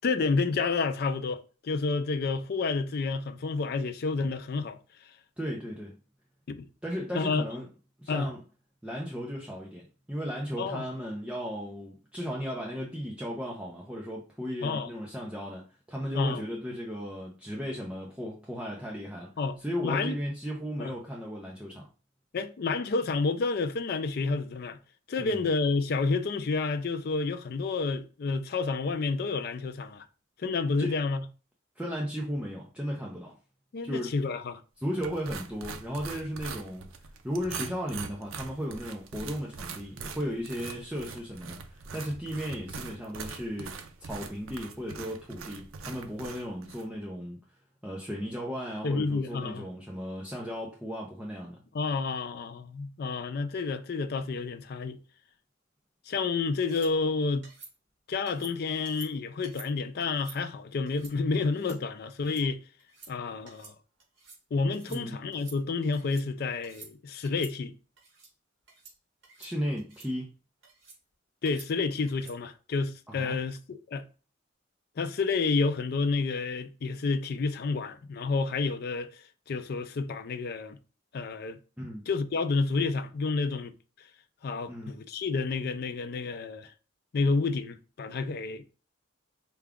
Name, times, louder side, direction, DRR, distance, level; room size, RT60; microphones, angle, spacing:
voice 1, 0.0-4.8 6.5-6.7 7.1-7.4 8.1-8.3 10.6-10.9 14.6-14.9 16.1-16.4 19.4-19.6 19.8-20.2 20.8-20.9 22.3-24.8 25.1-30.1 30.4-31.2 33.7-34.6 48.8-49.7 51.7-55.0 56.1-57.5 58.1-62.6 63.1-63.7 64.5-67.7 71.4-74.0 75.0-79.1 79.5-80.8 81.1-81.6 82.1-83.7 84.4-86.7 87.1-88.6, left 4 dB, 45° left, 0.4 m, -29 dB
voice 2, 5.4-6.0 6.8-7.7 8.0-8.4 8.8-15.6 15.9-19.3 19.6-21.8 25.2-25.4 30.8-31.0 31.8-33.4 33.8-34.2 34.8-36.8 37.2-47.4 47.8-51.6 64.9-65.2 69.4-70.4 73.1-73.4 81.8-82.0 84.7-85.0, equal, 5° right, 0.5 m, -35 dB
sound 1, 35.0-46.9, right 5 dB, 75° right, 0.5 m, -42 dB
sound 2, 56.6-56.9 57.4-57.7 58.3-58.5 58.9-59.1 59.4-59.7 60.0-60.4 60.9-61.1 61.5-61.8 62.1-62.4 62.8-63.1 63.5-63.7 64.0-64.4 64.7-65.0 65.3-66.3 66.6-66.9 67.2-67.5 68.0-68.3 68.7-68.9 69.2-69.5 69.8-70.1 70.6-71.0 71.5-71.7 72.1-72.4, right 4 dB, 55° right, 1.8 m, -50 dB
4.7 x 2.3 x 3.5 m
head